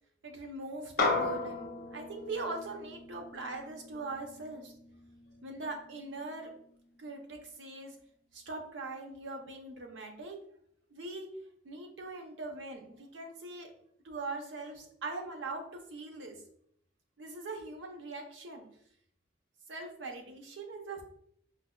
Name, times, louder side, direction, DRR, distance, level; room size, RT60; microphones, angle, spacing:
voice 1, 0.2-4.7 5.4-6.5 7.0-8.0 8.3-10.4 10.9-11.3 11.6-13.7 14.0-16.4 17.2-18.7 19.7-21.0, right 3 dB, 90° right, 3 dB, 0.6 m, -41 dB
sound 1, 1.0-5.6, left 3 dB, 55° left, 0.5 m, -35 dB
4.7 x 2.1 x 2.3 m, 0.68 s
head